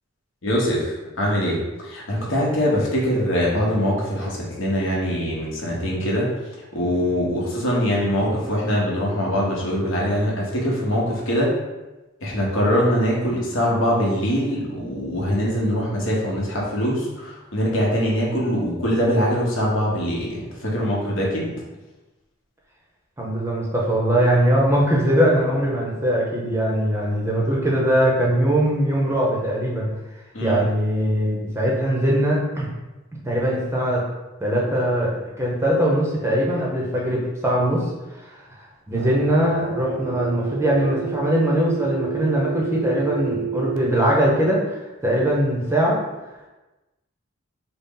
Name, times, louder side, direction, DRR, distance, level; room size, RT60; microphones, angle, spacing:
voice 1, 0.4-1.6 1.8-6.3 6.7-11.5 12.2-21.5 30.3-30.6, equal, 60° left, -3 dB, 0.9 m, -23 dB
voice 2, 23.2-29.9 30.4-32.7 33.3-34.0 34.4-37.8 38.9-44.7 45.0-46.0, right 1 dB, 10° right, -3 dB, 0.6 m, -21 dB
sound 1, 38.9-43.8, right 7 dB, 65° right, 0.4 m, -30 dB
4.0 x 2.0 x 3.7 m, 1.1 s
head